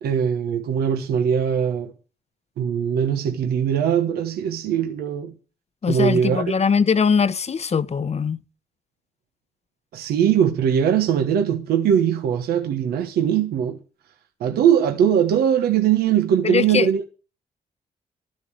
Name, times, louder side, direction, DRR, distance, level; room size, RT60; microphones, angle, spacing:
voice 1, 0.0-1.9 2.6-5.3 5.9-6.5 9.9-13.8 14.4-17.1, right 8 dB, 85° right, 1.2 m, -21 dB
voice 2, 5.8-8.4 16.4-16.9, left 6 dB, 45° left, 0.9 m, -21 dB
12.5 x 10.5 x 6.3 m
cardioid pair, 65°, 16 cm